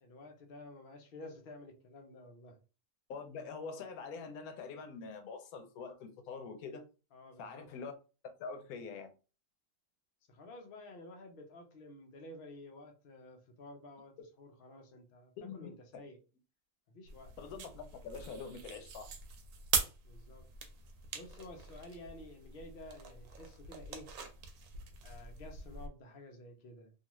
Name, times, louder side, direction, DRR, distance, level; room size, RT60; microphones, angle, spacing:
voice 1, 0.0-2.6 7.1-7.7 10.3-16.2 16.9-17.3 20.0-20.5 21.1-24.1 25.0-26.9, left 1 dB, 55° left, 0.6 m, -52 dB
voice 2, 3.1-6.8 7.4-7.9 8.4-9.1 15.4-15.7 17.4-19.1, left 5 dB, 85° left, 1.1 m, -44 dB
sound 1, 17.1-25.9, right 6 dB, 80° right, 1.1 m, -41 dB
2.7 x 2.4 x 2.9 m
omnidirectional pair, 1.5 m